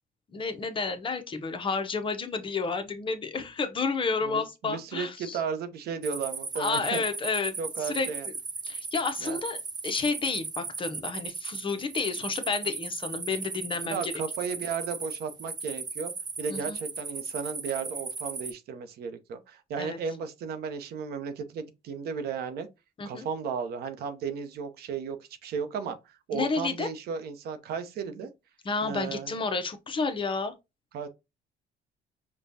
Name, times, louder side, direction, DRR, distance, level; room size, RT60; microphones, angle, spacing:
voice 1, 0.3-5.4 6.6-8.3 8.6-14.1 16.5-16.8 19.8-20.0 23.0-23.3 26.3-26.9 28.6-30.5, left 4 dB, 30° left, 0.6 m, -31 dB
voice 2, 4.2-7.0 7.6-8.3 9.2-9.4 13.8-16.1 16.4-22.7 23.1-25.2 25.4-28.3 28.8-29.4 30.9-31.1, right 6 dB, 70° right, 0.7 m, -34 dB
sound 1, 6.0-18.5, right 4 dB, 25° right, 0.6 m, -37 dB
5.1 x 2.2 x 2.6 m
cardioid pair, 110°, 17 cm